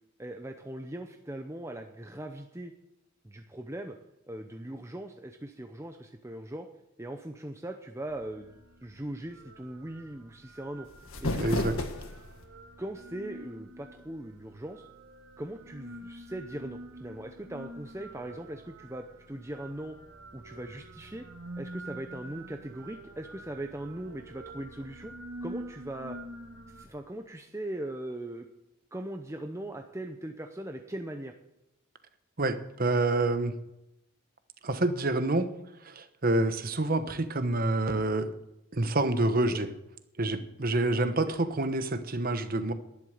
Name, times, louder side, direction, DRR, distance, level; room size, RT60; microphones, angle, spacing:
voice 1, 0.2-2.7 3.2-4.0 4.3-6.7 7.0-8.5 8.8-10.9 11.2-11.6 12.8-14.9 15.4-20.0 20.3-21.2 21.6-25.1 25.4-26.2 26.7-28.5 28.9-31.3 39.5-39.6 41.3-41.4, right 1 dB, 15° right, 5 dB, 0.7 m, -40 dB
sound 1, 8.1-26.8, right 1 dB, 70° right, 1.6 m, -47 dB
sound 2, 10.8-12.5, left 2 dB, 75° left, 1.7 m, -33 dB
voice 2, 11.4-11.8 32.4-33.6 34.6-35.5 35.8-38.3 38.7-39.7 40.2-42.7, right 2 dB, 40° right, 10 dB, 1.1 m, -27 dB
11.5 x 11.0 x 6.6 m, 0.90 s
head